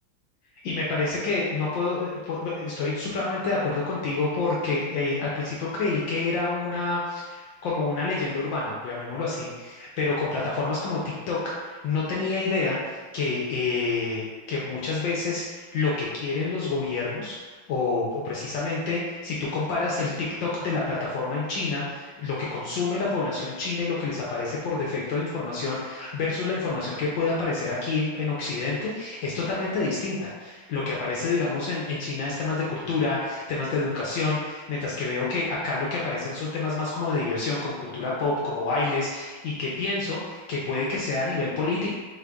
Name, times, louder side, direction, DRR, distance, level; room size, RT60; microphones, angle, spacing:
voice 1, 0.6-41.9, left 3 dB, 70° left, -5 dB, 1.3 m, -28 dB
4.5 x 2.5 x 3.4 m, 1.3 s
omnidirectional pair, 2.3 m